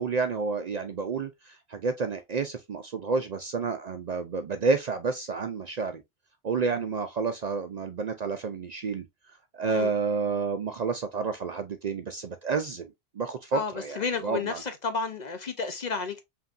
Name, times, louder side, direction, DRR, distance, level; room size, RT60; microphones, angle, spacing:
voice 1, 0.0-6.0 6.4-9.1 9.5-14.6, right 4 dB, 55° right, 0.5 m, -30 dB
voice 2, 13.5-16.2, left 4 dB, 50° left, 0.6 m, -32 dB
5.5 x 2.6 x 2.4 m
omnidirectional pair, 1.0 m